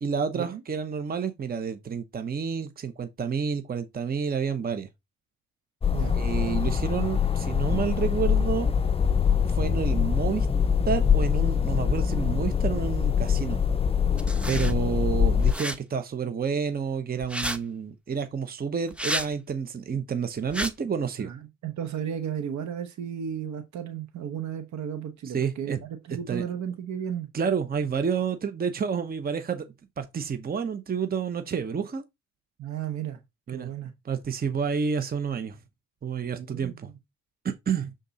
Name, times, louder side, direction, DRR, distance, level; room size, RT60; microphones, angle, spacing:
voice 1, 0.0-4.9 6.1-8.7 9.5-10.5 10.9-13.6 14.4-21.3 25.2-25.8 26.1-26.4 27.3-29.6 30.0-32.0 33.5-33.7 34.0-35.6 36.0-36.7 37.4-37.9, right 6 dB, 30° right, 0.8 m, -29 dB
sound 1, 5.8-15.5, left 7 dB, 20° left, 0.5 m, -24 dB
sound 2, 14.2-14.7 15.4-15.8 17.2-17.6 18.9-19.3 20.5-20.7, equal, 5° right, 0.8 m, -31 dB
voice 2, 21.2-27.3 32.6-33.2 33.5-33.9 36.3-36.9, right 9 dB, 70° right, 1.0 m, -34 dB
6.8 x 3.8 x 4.0 m
cardioid pair, 90°, 30 cm